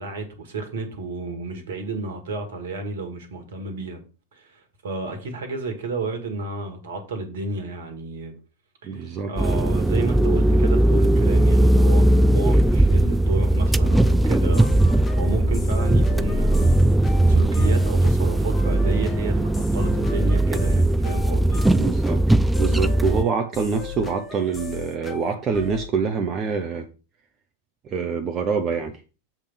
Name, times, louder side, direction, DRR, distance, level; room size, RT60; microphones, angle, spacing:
voice 1, 0.0-4.0 4.3-8.3 8.8-16.8 17.0-21.6, right 3 dB, 60° right, 1.7 m, -32 dB
voice 2, 8.8-9.3 21.6-22.2 22.6-26.9 27.8-29.0, right 5 dB, 30° right, 0.7 m, -25 dB
sound 1, 9.4-23.2, right 1 dB, 5° right, 0.3 m, -19 dB
sound 2, 14.0-25.9, left 6 dB, 20° left, 1.1 m, -38 dB
7.2 x 3.5 x 5.8 m
figure-of-eight pair, 90°, 0 cm